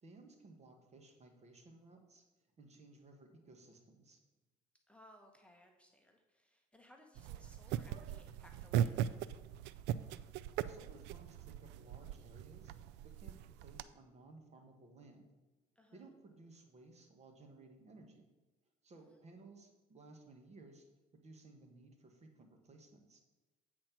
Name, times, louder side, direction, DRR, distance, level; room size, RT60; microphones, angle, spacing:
voice 1, 0.0-2.2 2.6-4.2 10.6-12.7 13.0-15.3 15.9-18.3 18.8-20.9 21.1-23.2, right 3 dB, 40° right, 4 dB, 1.7 m, -58 dB
voice 2, 4.9-9.0 15.7-16.1 19.1-19.2, left 1 dB, 5° left, 2 dB, 1.1 m, -63 dB
sound 1, 7.2-13.8, right 10 dB, 75° right, 0.4 m, -40 dB
8.5 x 4.4 x 6.0 m, 1.1 s
supercardioid pair, 80°, 18 cm